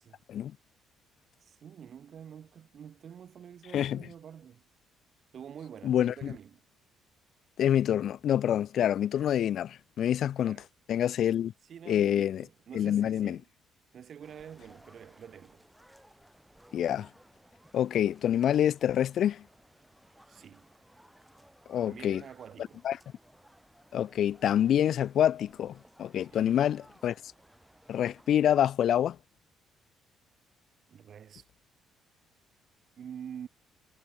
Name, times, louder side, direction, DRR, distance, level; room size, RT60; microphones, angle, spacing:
voice 1, 1.4-4.6 5.3-6.6 10.4-10.7 11.6-13.5 13.9-15.6 20.3-20.7 21.8-22.8 26.3-26.6 30.9-31.5 33.0-33.5, right 8 dB, 55° right, 6.0 m, -47 dB
voice 2, 5.8-6.3 7.6-10.6 10.9-11.5 11.9-12.4 12.7-13.4 16.7-17.1 17.7-19.4 21.7-22.2 22.8-23.0 23.9-27.2 27.9-29.2, left 10 dB, 65° left, 0.3 m, -26 dB
sound 1, 14.2-28.4, right 1 dB, 5° right, 7.0 m, -60 dB
cardioid pair, 85°, 0 cm